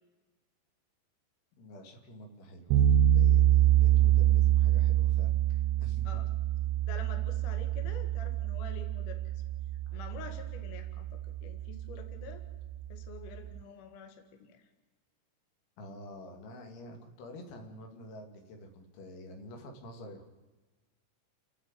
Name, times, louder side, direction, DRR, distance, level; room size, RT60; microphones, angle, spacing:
voice 1, 1.6-6.1 15.8-20.3, equal, 75° left, 4 dB, 4.5 m, -48 dB
sound 1, 2.7-13.6, right 12 dB, 90° right, 2.2 m, -26 dB
voice 2, 6.8-9.3 9.9-12.4 12.9-14.6, left 6 dB, 55° left, 5 dB, 2.7 m, -47 dB
29.5 x 10.0 x 9.0 m, 1.2 s
omnidirectional pair, 5.5 m